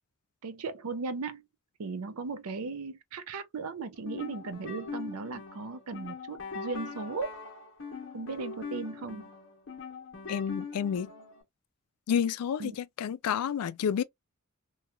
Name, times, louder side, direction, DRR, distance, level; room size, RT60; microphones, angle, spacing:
voice 1, 0.4-1.4 1.8-7.3 8.1-9.3 12.6-12.8, right 4 dB, 80° right, 0.5 m, -37 dB
sound 1, 3.9-11.4, left 4 dB, 60° left, 0.8 m, -42 dB
voice 2, 10.3-11.1 12.1-14.0, left 8 dB, 85° left, 0.3 m, -30 dB
2.9 x 2.3 x 2.2 m
head